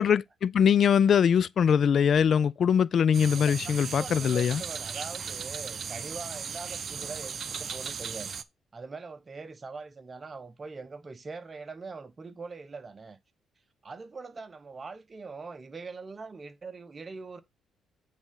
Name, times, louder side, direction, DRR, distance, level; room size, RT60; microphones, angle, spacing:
voice 1, 0.0-4.6, left 7 dB, 55° left, 0.4 m, -22 dB
sound 1, 3.1-8.4, right 6 dB, 50° right, 0.7 m, -37 dB
voice 2, 3.3-8.3 8.7-13.2 13.8-17.4, right 4 dB, 30° right, 1.1 m, -42 dB
8.8 x 3.8 x 5.5 m
cardioid pair, 90°, 0 cm